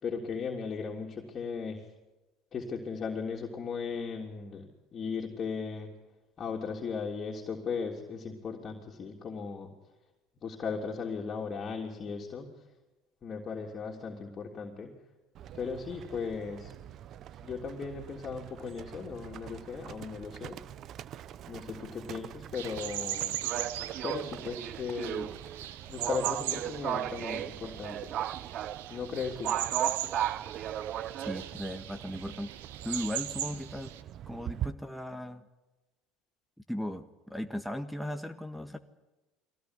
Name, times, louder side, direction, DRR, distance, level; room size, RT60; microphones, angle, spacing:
voice 1, 0.0-1.9 2.5-5.9 6.4-9.7 10.4-12.5 13.2-15.0 15.5-16.7 17.4-20.6 21.5-23.4 24.0-25.3 25.6-28.1 28.9-29.6, left 5 dB, 40° left, -1 dB, 3.3 m, -37 dB
Livestock farm animals working animals, 15.3-34.7, right 11 dB, 50° right, 0.7 m, -38 dB
sound 1, 22.5-34.0, right 12 dB, 85° right, 1.3 m, -39 dB
voice 2, 31.2-32.5 32.8-33.9 34.3-35.4 36.7-38.8, equal, ahead, 10 dB, 1.6 m, -37 dB
22.5 x 17.5 x 9.9 m, 1.1 s
hypercardioid pair, 85°, 0 cm